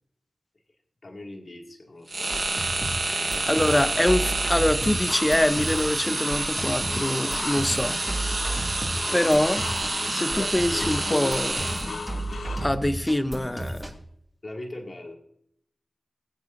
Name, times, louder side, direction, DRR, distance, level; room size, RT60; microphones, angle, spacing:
voice 1, 1.0-2.7 3.0-3.6 14.4-15.2, left 1 dB, 50° left, 1 dB, 2.2 m, -41 dB
sound 1, 2.1-12.2, right 2 dB, 45° right, 1.3 m, -29 dB
sound 2, 2.2-14.0, right 1 dB, 10° right, 2.4 m, -34 dB
voice 2, 3.5-8.0 9.1-9.6 10.1-11.7 12.6-13.8, left 1 dB, 15° left, 11 dB, 0.8 m, -24 dB
sound 3, 5.1-12.7, left 4 dB, 80° left, 0.3 m, -37 dB
22.0 x 8.0 x 2.6 m, 0.70 s
wide cardioid pair, 70°, 0 cm